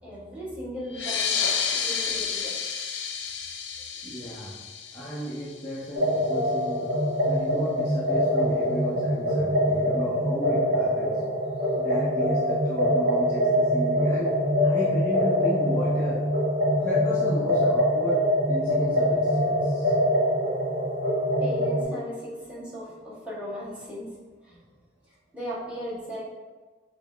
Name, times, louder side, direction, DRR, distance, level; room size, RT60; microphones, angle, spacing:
voice 1, 0.0-1.4 1.7-2.6 21.4-24.2 24.4-24.6 25.3-26.3, equal, 5° right, -8 dB, 1.3 m, -37 dB
sound 1, 0.9-6.0, left 6 dB, 85° left, 0.4 m, -30 dB
voice 2, 4.0-4.5 4.9-6.9 7.3-11.2 11.7-14.3 14.6-16.2 16.8-18.2 18.5-19.9, equal, 15° left, -9 dB, 0.6 m, -34 dB
sound 2, 5.9-21.8, equal, 55° right, 1.1 m, -24 dB
5.6 x 2.0 x 3.2 m, 1.3 s
head